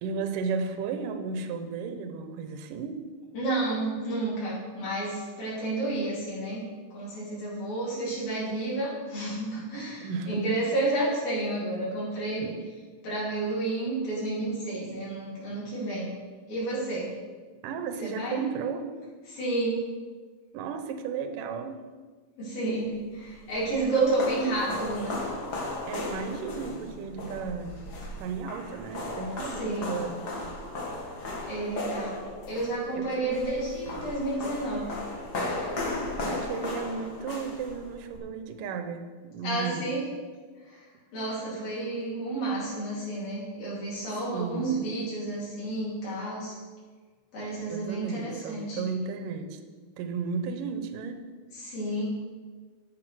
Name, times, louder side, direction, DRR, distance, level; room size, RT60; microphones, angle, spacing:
voice 1, 0.0-3.0 10.0-10.5 12.4-12.6 17.6-18.9 20.5-21.8 24.0-24.1 25.9-27.8 28.2-30.2 32.9-33.5 36.3-39.9 41.5-41.6 44.3-44.8 47.7-49.6 50.0-51.3, right 5 dB, 75° right, 8 dB, 2.5 m, -34 dB
voice 2, 3.3-6.6 6.9-12.5 13.0-16.1 16.5-17.1 18.0-18.5 19.3-19.8 22.4-25.2 29.5-29.9 31.4-32.2 32.4-35.0 39.4-40.0 40.6-40.9 41.1-46.6 47.3-48.8 51.5-52.0, right 2 dB, 80° left, -8 dB, 5.3 m, -31 dB
sound 1, 23.1-38.2, left 2 dB, 40° left, 1.6 m, -36 dB
11.5 x 8.2 x 6.3 m, 1.5 s
omnidirectional pair, 4.0 m